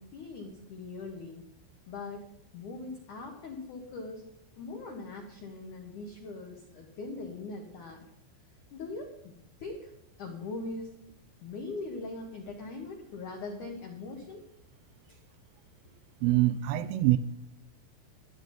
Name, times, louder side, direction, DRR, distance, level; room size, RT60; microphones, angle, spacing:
voice 1, 0.0-1.4 1.9-2.2 2.5-4.2 4.6-8.0 8.7-9.3 9.6-9.9 10.2-10.9 11.4-14.4 15.1-15.2, left 3 dB, 85° left, 1 dB, 1.7 m, -41 dB
voice 2, 16.2-17.2, right 16 dB, 85° right, 12 dB, 2.9 m, -24 dB
13.5 x 10.0 x 4.0 m, 0.78 s
omnidirectional pair, 5.9 m